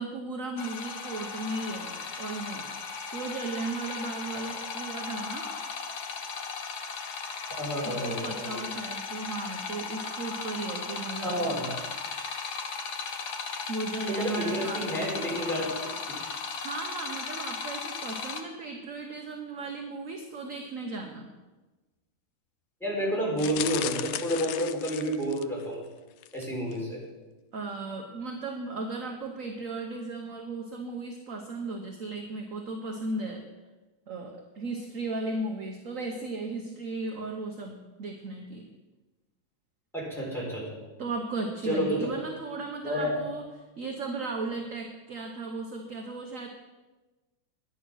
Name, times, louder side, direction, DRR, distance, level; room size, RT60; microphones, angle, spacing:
voice 1, 0.0-5.5 7.8-11.5 13.7-14.9 16.6-21.3 27.5-33.4 34.1-38.7 41.0-43.4 43.8-46.5, right 3 dB, 50° right, 3 dB, 1.1 m, -36 dB
sound 1, 0.6-18.4, left 5 dB, 55° left, 1.4 m, -36 dB
voice 2, 7.6-8.7 11.2-11.7 14.1-15.8 22.8-25.8 26.3-27.0 39.9-40.8 41.6-42.1 42.8-43.2, equal, ahead, -5 dB, 4.1 m, -30 dB
sound 2, 23.4-25.7 26.2-26.5 26.7-26.8, left 12 dB, 85° left, 1.5 m, -36 dB
11.0 x 9.8 x 6.2 m, 1.2 s
omnidirectional pair, 2.4 m